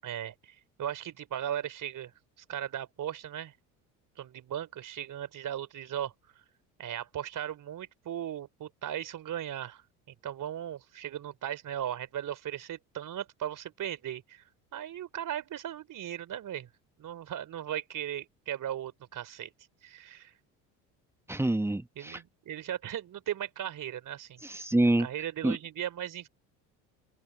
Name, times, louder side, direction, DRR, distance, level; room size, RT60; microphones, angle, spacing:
voice 1, 0.0-2.1 2.5-3.5 4.2-6.1 6.8-9.8 10.1-14.4 14.7-16.7 17.0-19.5 19.8-20.3 22.0-24.4 25.0-26.3, right 10 dB, 50° right, 3.7 m, -37 dB
voice 2, 21.3-22.2 24.4-25.1 25.4-25.6, right 1 dB, 5° right, 1.2 m, -26 dB
open air
hypercardioid pair, 65°, 41 cm